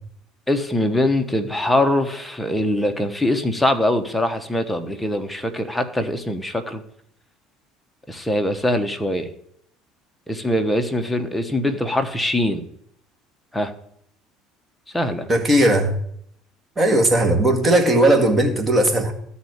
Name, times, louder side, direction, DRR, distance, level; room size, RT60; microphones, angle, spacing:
voice 1, 0.5-6.8 8.1-9.3 10.3-12.7 13.5-13.7 14.9-15.3, left 1 dB, 5° left, 6 dB, 1.1 m, -22 dB
voice 2, 15.3-15.9 16.8-19.1, right 1 dB, 15° right, 3 dB, 2.0 m, -17 dB
12.5 x 4.2 x 8.0 m, 0.68 s
supercardioid pair, 105°, 0 cm